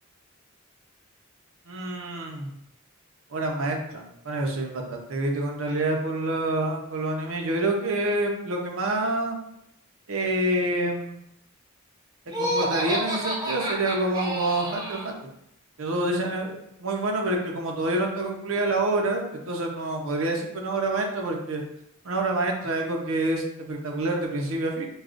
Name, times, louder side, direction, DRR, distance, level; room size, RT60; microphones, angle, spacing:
voice 1, 1.7-2.5 3.3-9.4 10.1-11.1 12.4-15.2 15.8-21.6 22.0-24.9, right 2 dB, 75° right, 1 dB, 0.7 m, -27 dB
Laughter, 12.3-15.1, equal, 20° right, 0.6 m, -29 dB
6.2 x 2.3 x 2.5 m, 0.79 s
head